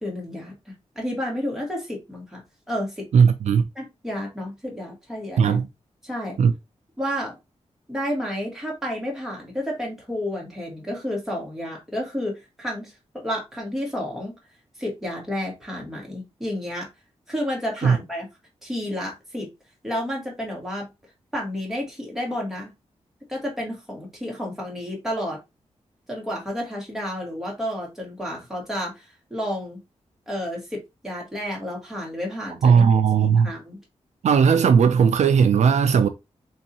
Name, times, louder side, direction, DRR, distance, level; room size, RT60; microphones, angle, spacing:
voice 1, 0.0-2.4 2.7-3.1 3.7-5.6 6.0-6.4 7.0-7.3 7.9-14.4 14.8-16.9 17.3-18.3 18.6-19.5 19.8-20.9 21.3-22.7 23.3-25.4 26.1-29.8 30.3-32.8 33.2-33.8, equal, 5° right, 1.4 m, -31 dB
voice 2, 3.1-3.7 5.4-5.7 6.4-6.5 17.8-18.0 32.6-33.5 34.2-36.1, right 6 dB, 70° right, 0.4 m, -17 dB
3.8 x 2.7 x 2.7 m
wide cardioid pair, 150°, 12 cm